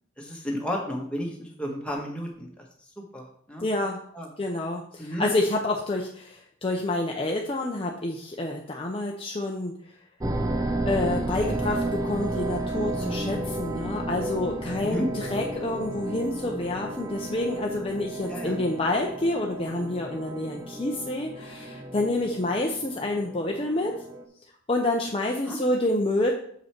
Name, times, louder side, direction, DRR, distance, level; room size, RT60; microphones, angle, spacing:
voice 1, 0.2-2.5 3.1-3.7 4.1-4.3 5.0-5.3 14.8-15.1 18.3-18.6 25.5-25.6, equal, 5° left, -1 dB, 1.5 m, -32 dB
voice 2, 3.6-4.0 4.4-9.7 10.9-23.9 24.7-26.3, left 2 dB, 30° left, 0 dB, 0.7 m, -28 dB
sound 1, 10.2-24.2, right 1 dB, 20° right, 0.6 m, -32 dB
7.1 x 5.4 x 4.5 m, 0.65 s
head